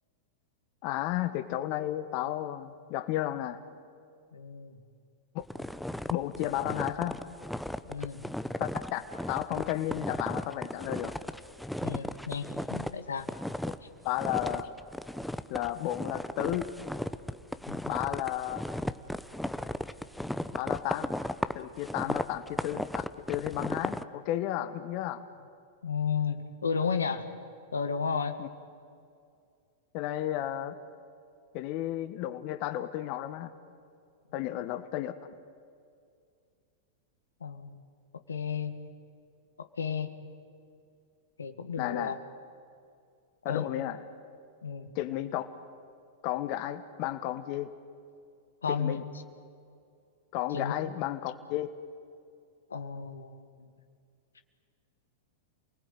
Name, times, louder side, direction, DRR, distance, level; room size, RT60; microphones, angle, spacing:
voice 1, 0.8-3.6 5.3-5.4 6.1-7.2 8.6-9.0 9.3-11.1 14.0-14.7 15.5-16.7 17.9-18.6 20.5-21.1 21.5-23.0 23.3-25.2 28.4-28.5 29.9-30.7 31.5-33.5 34.3-35.1 41.8-42.2 43.4-44.0 44.9-45.5 46.2-47.7 48.7-49.0 50.3-51.7, left 13 dB, 50° left, 9 dB, 1.4 m, -33 dB
voice 2, 4.3-4.8 7.8-8.2 11.8-13.3 17.7-17.8 22.0-22.2 25.8-27.2 27.7-28.4 37.4-37.8 38.3-38.7 39.6-40.1 41.4-42.2 43.5-43.7 44.6-44.9 48.6-49.0 50.5-50.7 52.7-53.7, left 6 dB, 85° left, 9 dB, 1.6 m, -33 dB
sound 1, 5.5-12.9 13.2-13.8 14.2-24.0, left 1 dB, ahead, 0.9 m, -35 dB
28.5 x 19.0 x 9.3 m, 2.3 s
hypercardioid pair, 100°, 0 cm